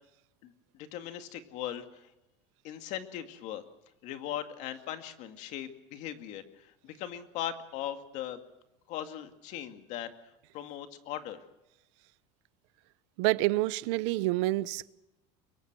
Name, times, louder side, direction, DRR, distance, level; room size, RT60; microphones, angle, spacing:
voice 1, 0.4-2.1 2.6-3.6 4.0-8.4 8.9-11.4, left 11 dB, 50° left, 2.3 m, -39 dB
voice 2, 13.2-14.9, right 18 dB, 70° right, 0.8 m, -28 dB
24.0 x 23.0 x 6.2 m
cardioid pair, 165°, 16 cm